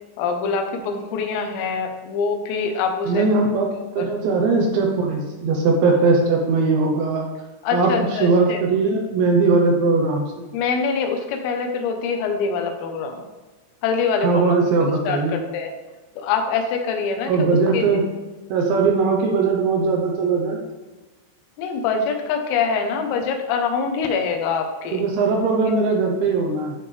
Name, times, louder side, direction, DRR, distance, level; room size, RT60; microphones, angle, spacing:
voice 1, 0.2-3.3 4.0-4.1 7.6-8.6 10.5-13.2 13.8-14.6 15.1-15.7 16.2-17.9 21.6-25.1, left 5 dB, 85° left, 4 dB, 3.7 m, -24 dB
voice 2, 3.1-3.7 4.0-7.3 7.7-10.3 14.2-15.4 17.3-18.1 18.5-20.6 24.9-26.7, right 4 dB, 75° right, 1 dB, 2.8 m, -19 dB
13.0 x 5.5 x 3.4 m, 1.2 s
omnidirectional pair, 5.9 m